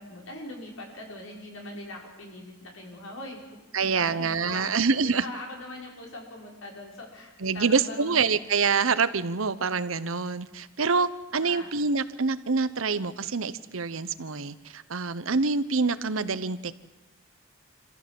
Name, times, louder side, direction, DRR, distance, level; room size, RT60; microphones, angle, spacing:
voice 1, 0.0-3.4 3.8-4.7 5.0-8.2 11.4-11.7, left 1 dB, 80° left, -1 dB, 5.8 m, -41 dB
voice 2, 3.7-5.2 7.4-16.8, right 4 dB, 75° right, 14 dB, 1.0 m, -26 dB
26.0 x 15.0 x 7.8 m, 1.2 s
head